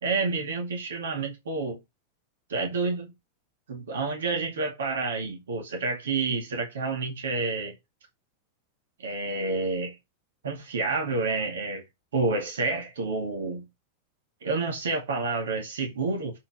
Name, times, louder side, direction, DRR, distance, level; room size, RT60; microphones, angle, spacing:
voice 1, 0.0-1.8 2.5-3.1 3.7-7.7 9.0-10.0 10.4-11.8 12.1-13.7 14.4-16.4, right 3 dB, 65° right, 2.2 m, -29 dB
7.4 x 4.4 x 5.5 m
figure-of-eight pair, 90°, 0 cm